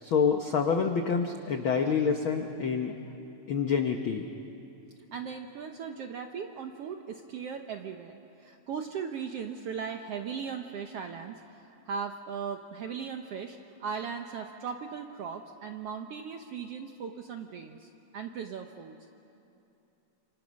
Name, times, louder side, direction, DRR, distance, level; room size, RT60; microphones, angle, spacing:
voice 1, 0.0-2.9 3.5-4.3, left 6 dB, 75° left, 5 dB, 1.1 m, -27 dB
voice 2, 5.1-19.0, right 6 dB, 70° right, 5 dB, 1.5 m, -38 dB
28.0 x 27.0 x 6.4 m, 2.9 s
omnidirectional pair, 3.8 m